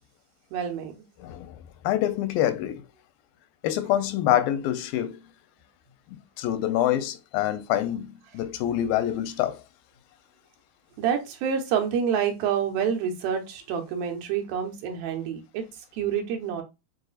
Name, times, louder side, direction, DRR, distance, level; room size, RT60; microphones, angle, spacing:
voice 1, 0.5-0.9 11.0-15.6 16.0-16.6, right 8 dB, 85° right, 2.8 m, -27 dB
voice 2, 1.2-2.9 3.6-5.2 6.4-9.6, left 12 dB, 85° left, 2.3 m, -26 dB
7.7 x 2.6 x 2.3 m
omnidirectional pair, 4.1 m